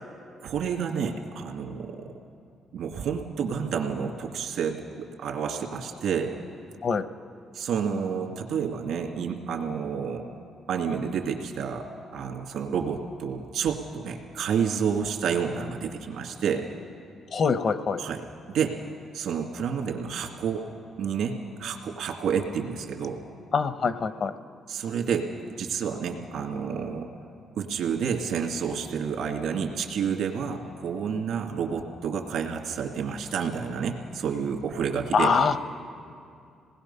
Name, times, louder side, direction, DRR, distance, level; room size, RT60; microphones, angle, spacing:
voice 1, 0.4-2.0 2.7-6.3 7.5-10.2 10.7-11.8 12.1-16.7 18.0-18.2 18.5-18.8 19.1-20.6 21.0-23.2 24.7-25.3 25.6-27.1 27.6-35.4, right 7 dB, 80° right, 3 dB, 2.2 m, -29 dB
voice 2, 17.3-18.0 23.5-24.3 35.1-35.6, left 5 dB, 55° left, 12 dB, 0.8 m, -24 dB
26.5 x 20.0 x 5.6 m, 2.4 s
cardioid pair, 90°, 0 cm